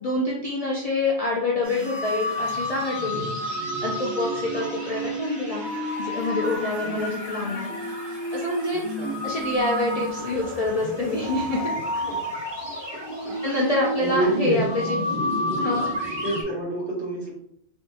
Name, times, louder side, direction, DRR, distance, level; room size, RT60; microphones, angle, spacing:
voice 1, 0.0-3.4 3.8-5.7 6.0-7.8 8.3-8.8 9.2-11.7 13.4-15.0 15.6-15.9, left 2 dB, 55° left, -3 dB, 0.4 m, -26 dB
sound 1, 1.6-16.4, equal, 25° right, 0.7 m, -30 dB
voice 2, 13.2-13.6 14.0-14.6 16.2-17.3, right 2 dB, 75° right, -5 dB, 1.5 m, -29 dB
3.5 x 2.2 x 2.7 m, 0.71 s
omnidirectional pair, 1.2 m